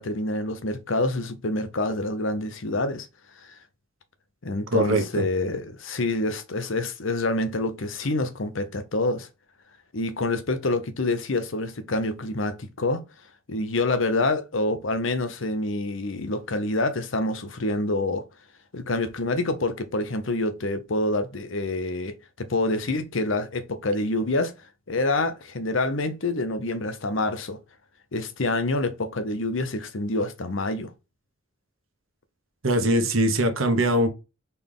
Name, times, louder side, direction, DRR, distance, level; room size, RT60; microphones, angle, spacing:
voice 1, 0.0-3.1 3.4-3.6 4.4-9.3 9.9-13.0 13.5-18.2 18.7-24.5 24.9-27.6 28.1-30.9, left 2 dB, 75° left, 0.9 m, -27 dB
voice 2, 4.7-5.3 32.6-34.1, right 1 dB, 90° right, 1.1 m, -22 dB
4.2 x 3.5 x 3.7 m
head